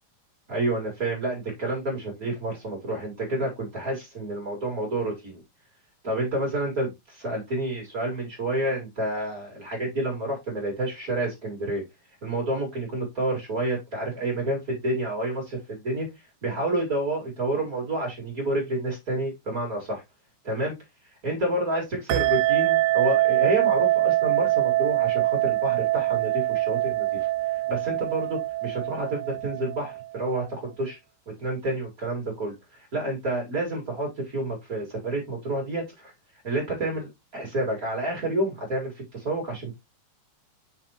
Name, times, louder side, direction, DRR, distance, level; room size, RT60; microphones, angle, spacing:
voice 1, 0.5-5.4 6.0-11.8 12.2-16.1 16.4-20.0 20.4-20.7 21.2-31.0 31.4-36.1 36.4-39.7, right 1 dB, 40° right, 1.3 m, -29 dB
sound 1, 22.1-30.2, right 16 dB, 90° right, 2.8 m, -24 dB
5.8 x 5.7 x 2.9 m
omnidirectional pair, 5.0 m